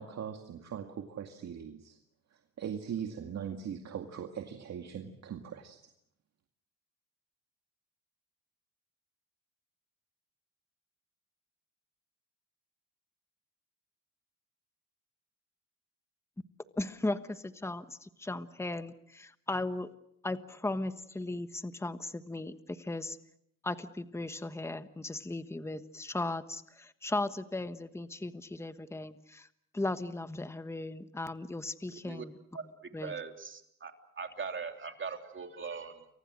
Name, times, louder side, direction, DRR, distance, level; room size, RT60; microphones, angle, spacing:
voice 1, 0.0-2.0 2.3-5.8, right 8 dB, 60° right, 4 dB, 2.2 m, -40 dB
voice 2, 16.8-19.9 20.2-23.2 23.6-29.5 29.7-32.4 32.9-33.1, left 2 dB, 10° left, 11 dB, 1.3 m, -37 dB
voice 3, 31.9-32.2 32.5-36.1, right 5 dB, 40° right, 5 dB, 3.3 m, -41 dB
29.5 x 24.0 x 6.4 m, 0.75 s
cardioid pair, 90°, 30 cm